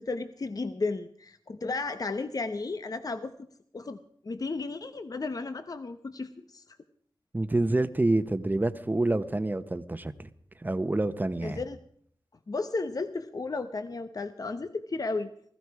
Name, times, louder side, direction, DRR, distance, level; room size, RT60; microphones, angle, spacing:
voice 1, 0.0-3.5 3.7-4.0 4.2-6.8 11.4-11.8 12.5-15.3, left 3 dB, 45° left, 10 dB, 0.9 m, -34 dB
voice 2, 7.3-10.3 10.6-11.6, right 2 dB, 20° right, 11 dB, 1.0 m, -27 dB
20.0 x 14.5 x 4.8 m, 0.63 s
wide cardioid pair, 95°, 9 cm